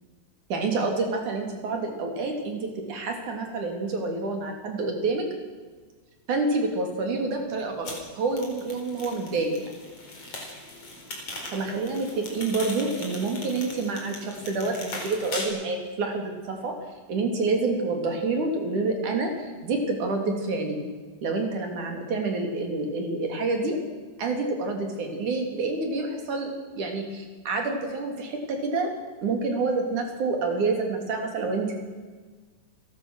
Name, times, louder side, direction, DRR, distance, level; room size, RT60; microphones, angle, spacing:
voice 1, 0.5-5.3 6.3-9.6 11.5-16.7 17.1-20.8 21.2-23.8 24.2-28.9 29.2-31.7, right 3 dB, 45° right, 3 dB, 4.0 m, -28 dB
sound 1, 7.8-15.4, left 2 dB, 30° left, 5.1 m, -39 dB
29.5 x 15.5 x 6.4 m, 1.4 s
omnidirectional pair, 5.6 m